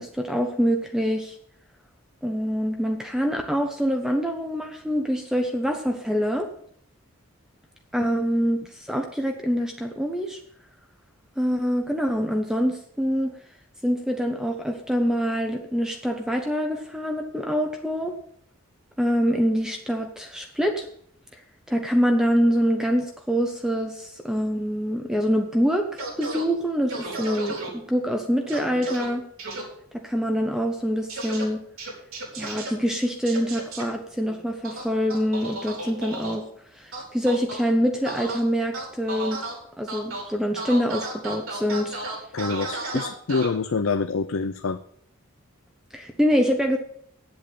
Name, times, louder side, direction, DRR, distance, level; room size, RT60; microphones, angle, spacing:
voice 1, 0.0-1.4 2.2-6.5 7.9-10.4 11.4-13.3 13.8-18.1 19.0-20.9 21.3-21.4 21.7-29.2 29.9-31.6 32.3-36.4 36.7-39.4 39.8-42.0 45.9-46.8, equal, 5° right, 3 dB, 0.9 m, -25 dB
sound 1, 26.0-26.4 26.9-27.7 28.5-29.0 29.4-29.6 31.1-31.4 31.8-32.7 33.2-33.8 34.6-36.3 36.9-37.6 38.0-38.4 38.7-39.5 39.9-40.2 40.6-43.5, right 2 dB, 75° right, 4.7 m, -33 dB
voice 2, 42.3-44.8, left 4 dB, 70° left, 9 dB, 0.6 m, -26 dB
9.0 x 7.9 x 8.4 m, 0.65 s
head